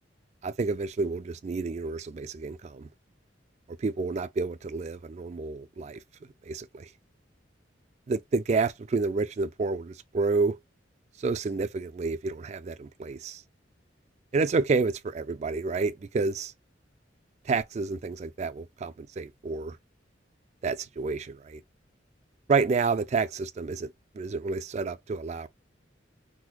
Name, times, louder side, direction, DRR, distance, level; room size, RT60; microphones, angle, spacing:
voice 1, 0.4-2.9 3.8-6.0 6.5-6.9 8.1-10.6 11.2-13.4 14.3-16.5 17.5-19.8 20.6-21.6 22.5-23.9 24.2-25.5, right 4 dB, 35° right, 0.3 m, -29 dB
3.7 x 3.0 x 2.2 m
head